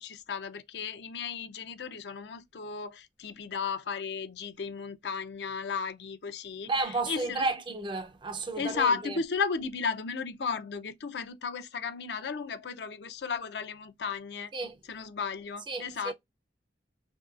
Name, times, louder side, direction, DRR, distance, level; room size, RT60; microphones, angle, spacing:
voice 1, 0.0-6.7 7.1-7.5 8.6-14.5 14.9-16.1, left 5 dB, 65° left, 0.5 m, -34 dB
voice 2, 6.7-9.2 14.5-14.8 15.7-16.1, right 3 dB, 25° right, 0.5 m, -32 dB
3.0 x 2.7 x 2.4 m
head